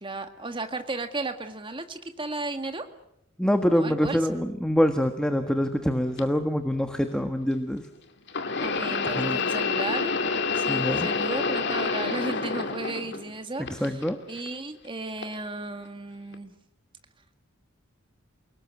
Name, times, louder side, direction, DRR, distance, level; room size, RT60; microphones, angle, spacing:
voice 1, 0.0-2.9 3.7-4.2 8.6-10.1 10.5-14.0 14.3-16.5, right 2 dB, 25° right, 7 dB, 1.9 m, -34 dB
voice 2, 3.4-7.8 9.1-9.4 10.7-11.1 13.7-14.2, equal, 5° left, 6 dB, 1.4 m, -25 dB
sound 1, 6.2-6.3 8.3-13.3 13.7-14.5 15.2-15.4 16.3-16.4, left 4 dB, 55° left, 2.3 m, -28 dB
29.0 x 19.5 x 8.7 m, 0.78 s
head